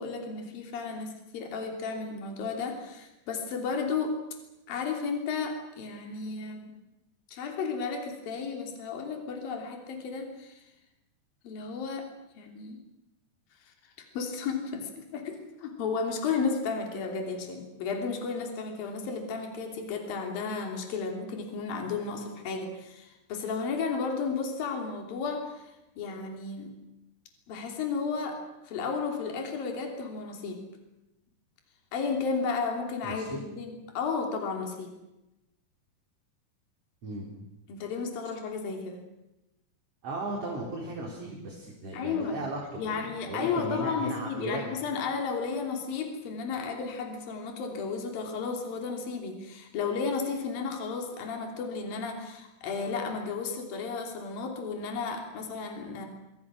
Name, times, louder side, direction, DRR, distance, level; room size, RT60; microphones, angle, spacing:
voice 1, 0.0-4.2 4.7-6.7 7.3-10.6 11.4-12.1 12.4-12.8 13.6-13.7 14.1-26.7 27.5-28.4 28.6-30.6 31.9-34.9 37.7-39.0 41.9-42.4 42.8-56.1, left 5 dB, 60° left, 3 dB, 4.7 m, -33 dB
voice 2, 33.0-33.4 37.0-37.2 40.0-44.6, right 2 dB, 35° right, -1 dB, 4.6 m, -36 dB
26.0 x 23.5 x 6.3 m, 0.94 s
omnidirectional pair, 4.7 m